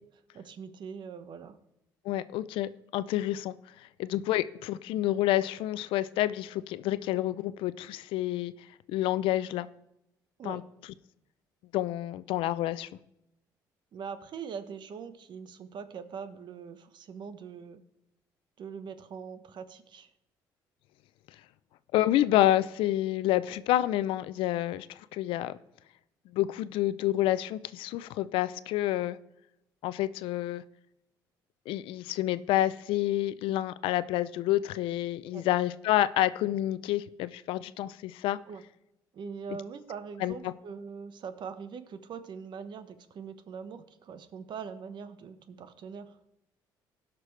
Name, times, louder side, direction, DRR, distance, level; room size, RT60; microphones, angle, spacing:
voice 1, 0.3-1.6 10.4-10.6 13.9-17.8 18.6-20.1 35.3-35.5 38.5-38.6 39.1-46.2, right 6 dB, 60° right, 11 dB, 1.1 m, -42 dB
voice 2, 2.0-3.5 4.0-8.5 8.9-9.7 10.4-10.6 11.7-12.9 21.9-24.9 25.1-25.6 26.3-29.2 29.8-30.6 31.7-38.4 40.2-40.5, left 14 dB, 80° left, 16 dB, 0.5 m, -28 dB
17.0 x 6.0 x 3.3 m, 0.86 s
supercardioid pair, 65°, 9 cm